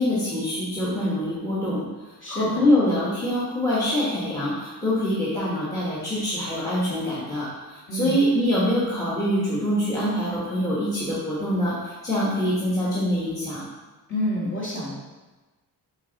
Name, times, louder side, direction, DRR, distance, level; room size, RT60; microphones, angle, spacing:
voice 1, 0.0-13.6, equal, 10° left, -8 dB, 1.3 m, -25 dB
voice 2, 2.2-2.6 7.9-8.2 14.1-15.0, left 1 dB, 30° left, -7 dB, 2.2 m, -28 dB
7.7 x 3.9 x 4.0 m, 1.2 s
wide cardioid pair, 170°, 41 cm